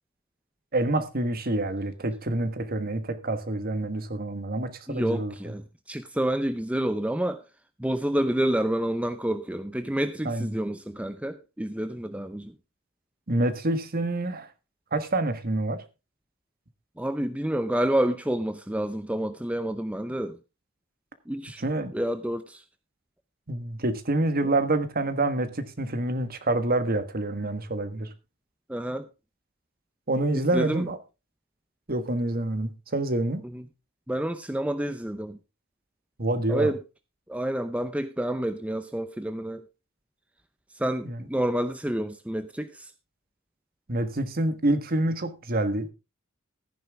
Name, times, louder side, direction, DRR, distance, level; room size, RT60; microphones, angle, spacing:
voice 1, 0.7-5.3 10.2-10.6 13.3-14.5 14.9-15.8 21.6-21.9 23.5-28.1 30.1-31.0 31.9-33.5 36.2-36.7 41.0-41.2 43.9-45.9, right 2 dB, 45° right, 1.5 m, -27 dB
voice 2, 4.9-7.4 7.8-12.5 17.0-20.4 21.3-21.6 21.9-22.6 24.4-24.5 28.7-29.1 30.5-30.8 33.5-33.6 34.1-35.4 36.5-36.8 37.3-39.6 40.7-42.9, right 1 dB, 5° right, 0.6 m, -28 dB
14.5 x 10.0 x 3.5 m
head